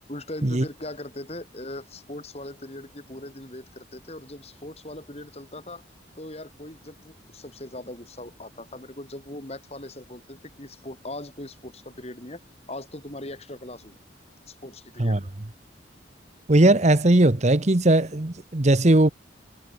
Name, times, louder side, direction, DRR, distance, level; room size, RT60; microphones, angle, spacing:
voice 1, 0.1-5.8 6.2-12.4 12.7-14.0 14.5-15.3, left 1 dB, 35° left, 4.0 m, -40 dB
voice 2, 16.5-19.1, right 1 dB, 40° right, 1.1 m, -18 dB
head